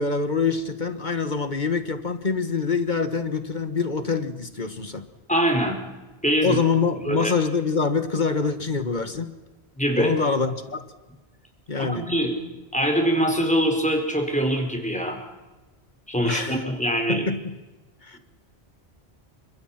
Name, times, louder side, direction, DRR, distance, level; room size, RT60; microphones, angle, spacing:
voice 1, 0.0-5.0 6.4-9.3 9.9-10.8 11.7-12.1 16.2-16.6 17.1-17.5 18.0-18.2, left 5 dB, 45° left, 10 dB, 1.7 m, -25 dB
voice 2, 5.3-5.8 6.2-6.6 7.0-7.3 9.8-10.2 11.8-12.3 12.7-15.2 16.1-17.3, equal, 5° left, 3 dB, 4.6 m, -23 dB
29.5 x 26.0 x 6.0 m, 1.2 s
omnidirectional pair, 1.1 m